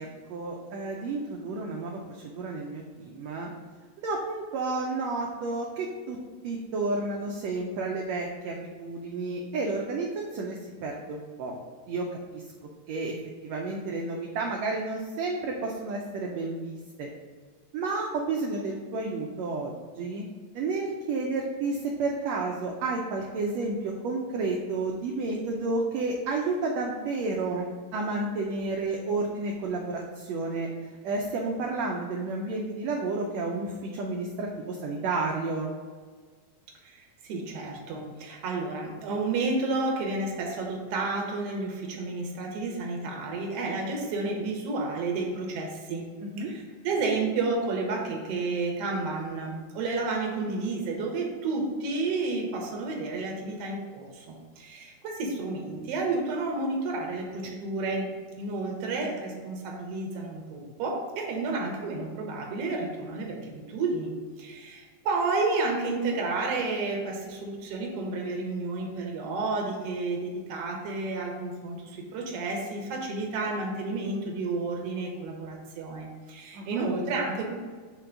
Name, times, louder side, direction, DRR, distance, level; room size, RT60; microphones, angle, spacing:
voice 1, 0.0-3.5 4.0-6.2 6.4-11.5 11.9-12.1 12.3-12.4 12.9-13.1 13.4-17.1 17.7-20.2 20.5-30.7 31.0-35.7 46.2-46.5 59.0-59.3 76.5-76.9, right 3 dB, 80° right, 0 dB, 1.5 m, -31 dB
voice 2, 37.2-46.1 46.4-58.1 58.4-77.5, right 3 dB, 60° right, 0 dB, 1.7 m, -31 dB
5.2 x 3.7 x 5.6 m, 1.5 s
omnidirectional pair, 3.7 m